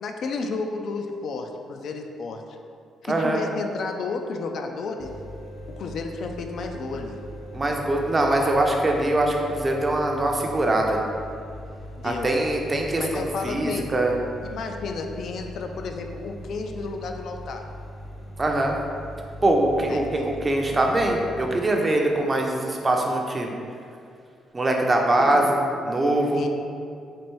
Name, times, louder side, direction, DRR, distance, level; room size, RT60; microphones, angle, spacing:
voice 1, 0.0-2.6 3.0-5.1 5.7-7.2 12.0-12.4 13.0-13.9 14.4-17.7 19.8-20.4 25.2-25.5 26.3-26.5, left 4 dB, 65° left, 4 dB, 0.3 m, -32 dB
voice 2, 3.0-3.4 7.5-11.0 12.0-14.1 18.4-18.7 19.4-23.5 24.5-26.4, right 1 dB, 30° right, 1 dB, 0.5 m, -23 dB
sound 1, 3.3-8.6, right 3 dB, 55° right, 1.1 m, -46 dB
sound 2, 5.0-21.5, equal, 30° left, 0.6 m, -40 dB
4.4 x 2.6 x 3.0 m, 2.4 s
cardioid pair, 90°, 0 cm